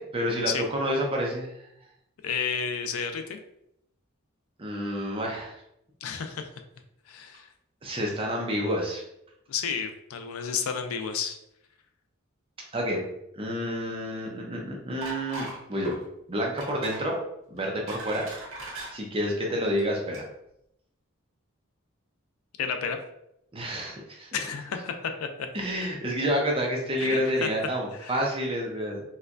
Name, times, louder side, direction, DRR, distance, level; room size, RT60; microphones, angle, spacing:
voice 1, 0.0-1.7 4.6-5.6 7.8-9.0 12.7-13.1 13.4-15.9 16.3-17.2 17.5-18.3 18.9-20.2 23.5-24.3 25.5-29.0, equal, 25° right, -1 dB, 0.6 m, -29 dB
voice 2, 2.2-3.4 6.0-6.5 7.1-7.5 9.5-11.4 22.6-23.0 24.3-25.5 27.0-27.5 28.0-28.1, left 6 dB, 80° left, 7 dB, 0.4 m, -31 dB
sound 1, 15.0-15.6 15.8-16.0 16.6-17.0 17.6-18.9 19.6-19.8 20.1-20.2, right 2 dB, 70° right, 1.1 m, -39 dB
4.2 x 2.2 x 2.5 m, 0.79 s
head